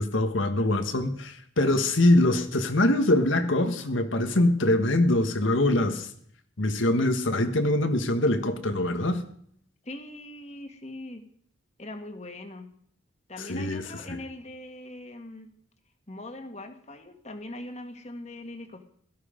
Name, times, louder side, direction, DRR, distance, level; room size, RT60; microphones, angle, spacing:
voice 1, 0.0-6.1 6.6-9.2 13.4-14.2, left 1 dB, 80° left, 1.6 m, -24 dB
voice 2, 9.8-11.2 11.8-12.7 13.3-15.5 16.1-18.8, left 1 dB, 35° left, 1.7 m, -41 dB
17.0 x 13.5 x 5.2 m
head